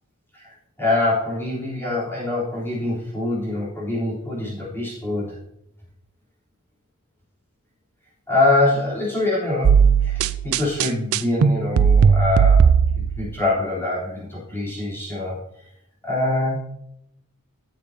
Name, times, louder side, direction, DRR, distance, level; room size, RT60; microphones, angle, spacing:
voice 1, 0.3-5.4 8.3-12.7 13.2-15.4 16.0-16.6, left 2 dB, 10° left, -7 dB, 3.5 m, -24 dB
sound 1, 9.6-13.3, right 6 dB, 70° right, 0.4 m, -17 dB
13.0 x 6.9 x 2.8 m, 0.78 s
head